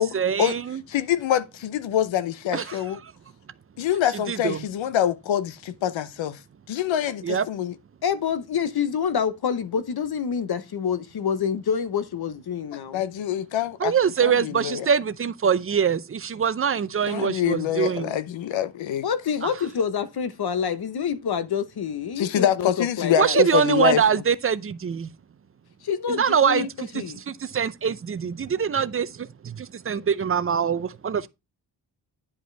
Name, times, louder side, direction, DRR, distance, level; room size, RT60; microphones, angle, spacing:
voice 1, 0.0-0.8 2.5-2.8 4.3-4.6 7.2-7.4 13.8-18.1 23.2-25.1 26.1-26.7 27.3-29.1 29.6-31.2, right 7 dB, 30° right, 0.5 m, -23 dB
voice 2, 0.9-3.0 3.8-6.4 6.7-7.7 12.9-13.9 14.2-14.9 17.1-19.1 22.2-24.2, left 10 dB, 90° left, 0.8 m, -25 dB
voice 3, 8.0-13.0 19.0-23.4 25.8-27.2, left 7 dB, 55° left, 0.9 m, -27 dB
9.7 x 5.1 x 3.3 m
cardioid pair, 95°, 45 cm